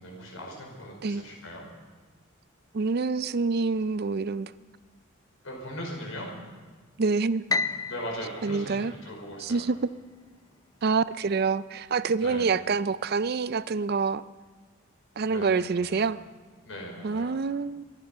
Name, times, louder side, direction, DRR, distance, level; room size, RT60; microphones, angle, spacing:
voice 1, 0.0-1.7 5.4-6.3 7.8-9.6 12.1-12.6 15.2-16.1 16.6-17.4, equal, 85° left, 0 dB, 4.9 m, -39 dB
voice 2, 2.7-4.5 7.0-7.4 8.4-8.9 9.4-9.8 10.8-14.2 15.2-16.2 17.0-17.8, right 4 dB, 50° right, 16 dB, 0.4 m, -26 dB
Piano, 7.5-9.8, left 3 dB, 20° left, 0.4 m, -32 dB
24.5 x 10.5 x 5.6 m, 1.4 s
head